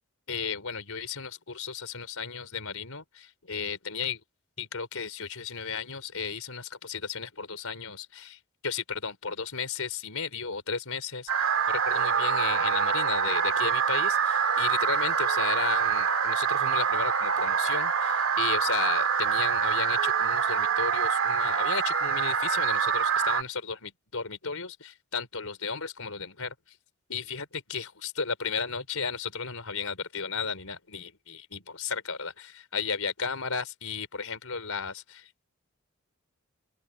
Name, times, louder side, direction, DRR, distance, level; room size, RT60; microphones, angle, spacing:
voice 1, 0.3-4.2 4.6-26.5 27.1-35.3, left 5 dB, 85° left, 4.1 m, -34 dB
sound 1, 11.3-23.4, right 6 dB, 80° right, 2.0 m, -25 dB
head